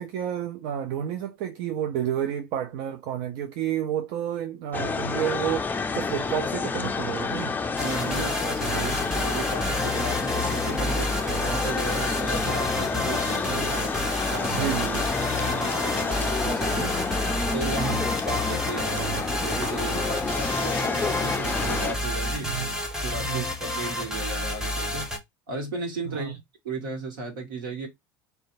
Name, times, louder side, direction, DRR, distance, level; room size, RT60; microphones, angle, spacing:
voice 1, 0.0-7.6 14.5-15.1 17.8-18.0 22.4-22.7 23.2-23.5 26.1-26.4, right 10 dB, 55° right, 0.4 m, -30 dB
sound 1, 4.7-21.9, left 4 dB, 15° left, 0.4 m, -29 dB
sound 2, 7.8-25.2, left 1 dB, 5° right, 0.9 m, -30 dB
voice 2, 7.8-14.0 14.3-14.7 15.2-17.0 17.5-22.5 23.0-25.1 25.5-26.4 26.6-27.9, right 3 dB, 70° right, 1.1 m, -35 dB
2.7 x 2.2 x 2.5 m
hypercardioid pair, 75°, 11 cm